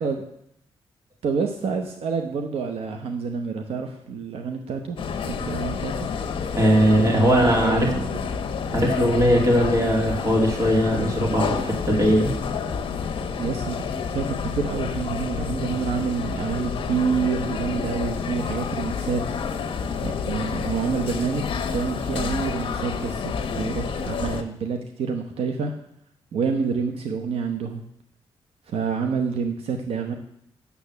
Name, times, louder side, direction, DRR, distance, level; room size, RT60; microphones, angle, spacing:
voice 1, 1.2-5.0 5.2-6.1 6.9-8.2 13.4-13.8 14.1-19.2 20.0-25.7 26.3-27.8 28.7-30.1, right 5 dB, 80° right, 5 dB, 0.9 m, -28 dB
sound 1, 5.0-24.4, left 6 dB, 60° left, 1.0 m, -29 dB
voice 2, 6.5-7.9 8.7-12.3, equal, 35° right, -1 dB, 2.5 m, -20 dB
8.4 x 7.1 x 6.8 m, 0.74 s
wide cardioid pair, 165°, 10 cm